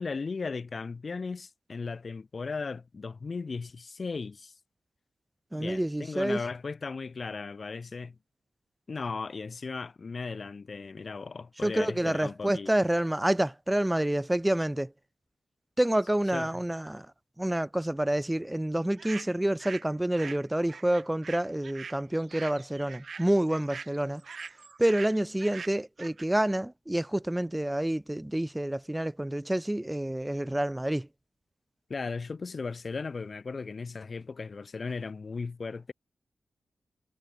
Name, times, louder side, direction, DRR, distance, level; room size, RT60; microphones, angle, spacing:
voice 1, 0.0-4.5 5.5-8.2 8.9-12.7 16.3-16.6 31.9-35.9, left 4 dB, 45° left, 0.9 m, -36 dB
voice 2, 5.5-6.4 11.6-14.9 15.8-17.1 17.4-24.2 24.8-31.1, right 1 dB, 10° right, 0.6 m, -28 dB
sound 1, 19.0-19.9 20.1-26.2, right 5 dB, 60° right, 0.7 m, -43 dB
wide cardioid pair, 95°, 0 cm